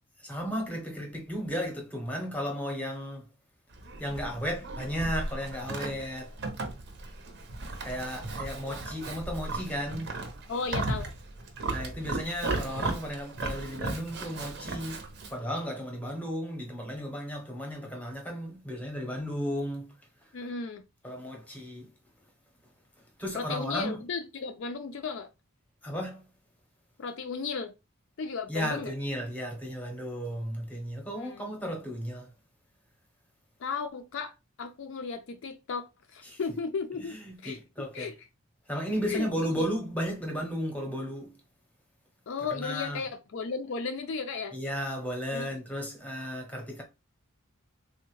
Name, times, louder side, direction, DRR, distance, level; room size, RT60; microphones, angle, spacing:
voice 1, 0.2-3.3 4.0-6.3 7.8-10.2 11.7-20.0 21.0-21.9 23.2-24.0 25.8-26.3 28.5-32.3 36.2-36.4 37.0-38.1 38.7-41.4 42.5-43.0 44.5-46.8, equal, 5° left, 0.7 m, -34 dB
Livestock farm animals working animals, 3.7-15.4, right 2 dB, 50° right, 0.6 m, -36 dB
voice 2, 10.5-11.1 20.3-20.8 23.3-25.3 27.0-27.7 28.2-28.9 31.2-31.5 33.6-37.6 37.9-38.2 39.1-39.3 39.6-39.7 42.3-44.6 45.3-45.6, left 5 dB, 60° left, 0.4 m, -35 dB
3.5 x 2.1 x 3.0 m
head